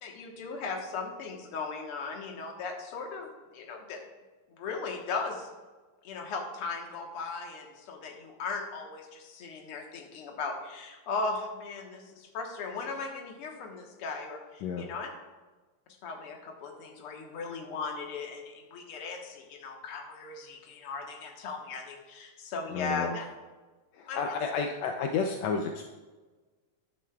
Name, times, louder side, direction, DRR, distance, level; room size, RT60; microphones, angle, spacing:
voice 1, 0.0-4.0 4.5-5.5 6.0-15.1 16.0-23.2 24.1-24.3, left 4 dB, 55° left, 1 dB, 1.8 m, -37 dB
voice 2, 22.7-23.1 24.0-25.8, left 5 dB, 80° left, 3 dB, 1.6 m, -31 dB
13.5 x 11.0 x 2.4 m, 1.3 s
omnidirectional pair, 3.8 m